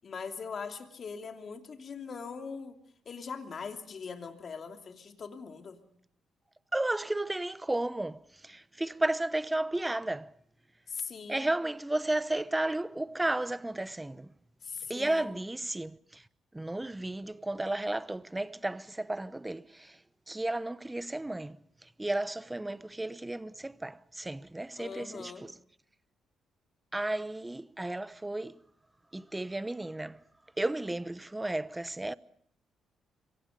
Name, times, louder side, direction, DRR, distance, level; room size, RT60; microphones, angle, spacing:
voice 1, 0.0-2.7 3.0-5.8 10.9-11.5 14.6-15.4 24.8-25.5, left 5 dB, 50° left, 2.9 m, -41 dB
voice 2, 6.7-10.3 11.3-14.3 14.9-16.2 16.5-20.0 20.3-21.6 22.0-25.5 26.9-28.6 29.1-30.2 30.6-32.1, right 1 dB, 10° right, 0.8 m, -33 dB
26.0 x 23.5 x 5.3 m
cardioid pair, 90°, 0 cm